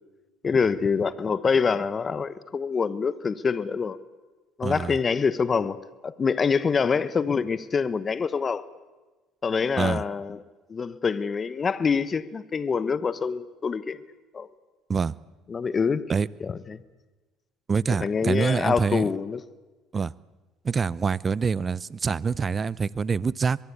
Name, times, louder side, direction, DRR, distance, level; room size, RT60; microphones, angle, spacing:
voice 1, 0.4-4.0 4.6-5.8 6.0-8.6 9.4-10.4 10.7-14.0 14.3-14.5 15.5-16.1 16.4-16.8 17.9-19.4, left 5 dB, 35° left, 1.1 m, -25 dB
voice 2, 4.6-5.0 9.8-10.0 14.9-15.1 16.1-16.3 17.7-19.1 19.9-20.1 20.6-23.6, right 5 dB, 35° right, 0.7 m, -25 dB
23.0 x 22.5 x 8.4 m
supercardioid pair, 75°, 0 cm